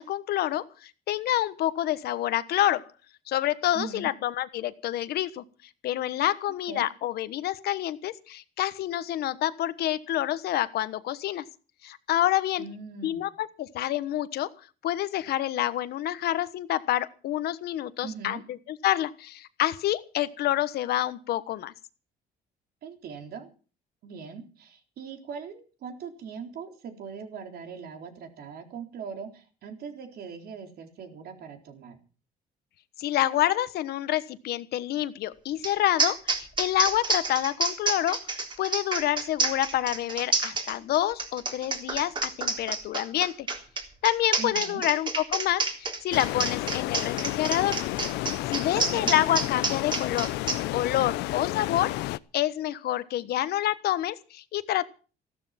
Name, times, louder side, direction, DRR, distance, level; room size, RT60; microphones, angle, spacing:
voice 1, 0.0-2.9 3.3-5.4 5.8-11.4 11.8-12.6 13.0-14.5 14.8-18.4 18.7-21.7 33.0-43.5 44.0-47.8 48.5-50.3 50.7-54.8, left 13 dB, 70° left, 14 dB, 1.3 m, -28 dB
voice 2, 3.7-4.1 6.7-6.8 12.6-13.3 18.0-18.4 22.8-23.5 24.0-32.0 44.4-44.8 48.8-49.1, right 6 dB, 65° right, 5 dB, 3.8 m, -40 dB
sound 1, 35.6-35.7 36.0-50.6, right 3 dB, 30° right, 3.6 m, -28 dB
sound 2, 46.1-52.2, left 18 dB, 90° left, 0.6 m, -31 dB
15.0 x 13.0 x 5.9 m, 0.38 s
cardioid pair, 110°, 17 cm